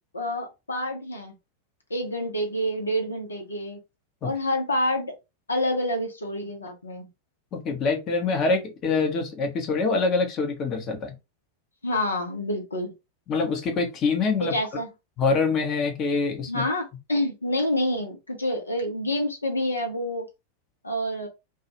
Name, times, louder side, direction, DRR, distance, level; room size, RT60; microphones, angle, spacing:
voice 1, 0.1-1.3 1.9-3.8 4.2-5.1 5.5-7.1 11.8-12.9 14.4-14.9 16.5-20.3 20.8-21.3, left 1 dB, 75° left, 0.8 m, -27 dB
voice 2, 7.5-11.1 13.3-14.5 15.2-16.6, left 4 dB, 30° left, 0.8 m, -25 dB
2.3 x 2.3 x 2.9 m
figure-of-eight pair, 90°, 0 cm